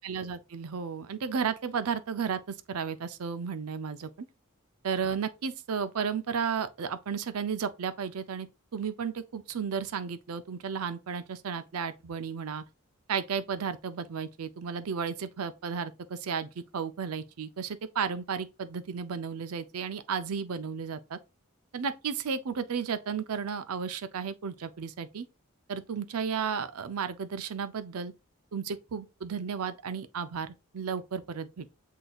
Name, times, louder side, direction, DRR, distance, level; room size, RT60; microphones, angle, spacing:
voice 1, 0.0-4.1 4.8-12.6 13.1-21.2 21.7-25.3 25.7-28.1 28.5-31.7, right 6 dB, 90° right, 0.5 m, -33 dB
7.7 x 2.8 x 2.3 m
head